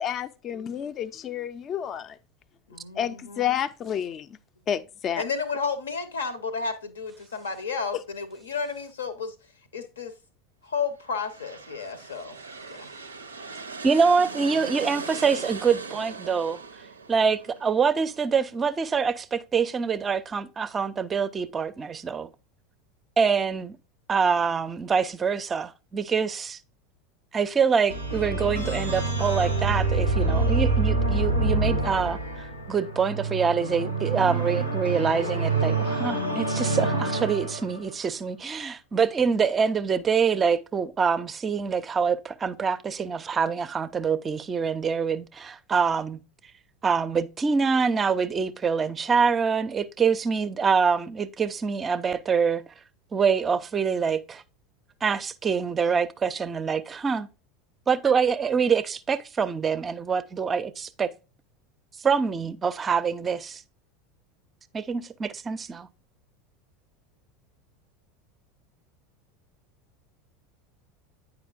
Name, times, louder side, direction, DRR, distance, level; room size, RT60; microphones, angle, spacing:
voice 1, 0.0-2.2 3.0-4.3 4.7-5.2, left 9 dB, 35° left, 0.4 m, -30 dB
voice 2, 2.7-3.6 5.2-9.3 9.7-10.1 10.6-12.4 12.8-12.9, left 5 dB, 75° left, 0.7 m, -32 dB
sound 1, 11.0-18.7, right 4 dB, 80° right, 0.4 m, -40 dB
voice 3, 13.8-16.6 17.1-22.3 23.2-23.8 24.1-26.6 27.3-32.2 32.7-46.2 46.8-52.6 53.1-54.4 55.0-57.3 57.9-61.1 62.0-63.6 64.7-65.9, right 6 dB, 25° right, 0.4 m, -25 dB
sound 2, 27.9-37.9, right 3 dB, 90° left, 1.1 m, -26 dB
9.2 x 4.9 x 2.4 m
figure-of-eight pair, 80°, 0 cm